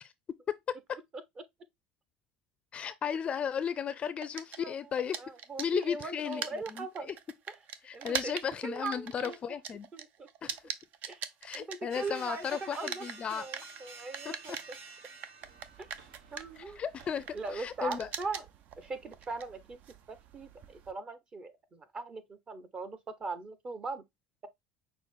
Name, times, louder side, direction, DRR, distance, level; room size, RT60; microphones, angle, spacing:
voice 1, 2.7-5.2 5.6-7.2 7.8-9.9 10.4-10.6 11.4-13.5 14.2-14.6 16.6-17.2 17.5-18.1, left 7 dB, 35° left, 0.5 m, -35 dB
sound 1, 4.2-12.4 12.7-20.9, right 8 dB, 50° right, 0.6 m, -42 dB
voice 2, 5.2-7.1 7.9-9.4 9.9-10.3 11.1-11.2 11.5-13.1 13.3-14.6 16.3-16.8 17.3-18.4 18.8-19.8 20.1-24.0, right 3 dB, 30° right, 0.9 m, -40 dB
sound 2, 11.9-17.8, right 4 dB, 75° right, 1.2 m, -51 dB
6.0 x 2.1 x 3.6 m
supercardioid pair, 105°, 3 cm